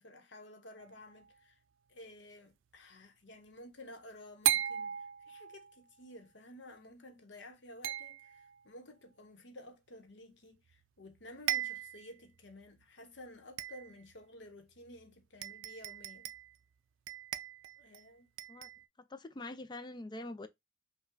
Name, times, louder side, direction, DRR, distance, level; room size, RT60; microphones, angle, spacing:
voice 1, 0.0-1.6 1.9-16.3 17.8-18.3, left 1 dB, 65° left, 1.0 m, -53 dB
sound 1, 0.8-1.3 4.4-5.8 7.8-8.6 10.7-10.8 11.1-11.2 11.5-12.1 12.6-12.7 13.6-14.1 15.0-15.1 15.4-16.5 17.1-18.0 18.4-18.8, right 11 dB, 90° right, 0.4 m, -37 dB
voice 2, 19.0-20.5, left 2 dB, 25° left, 0.4 m, -44 dB
5.5 x 2.3 x 3.7 m
head